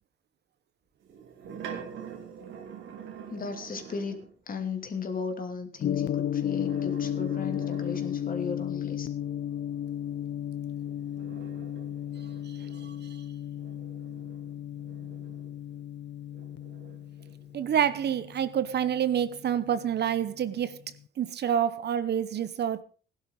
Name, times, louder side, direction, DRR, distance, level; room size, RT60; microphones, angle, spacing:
sound 1, 1.0-4.3 6.3-8.6 10.6-15.8 16.3-18.1, right 7 dB, 80° right, 2.8 m, -46 dB
voice 1, 3.3-9.1, left 5 dB, 45° left, 2.8 m, -36 dB
Gong, 5.8-20.0, left 10 dB, 65° left, 0.7 m, -34 dB
voice 2, 17.5-20.8 21.2-22.8, right 9 dB, 55° right, 0.9 m, -27 dB
16.5 x 11.5 x 4.0 m
cardioid pair, 90°, 20 cm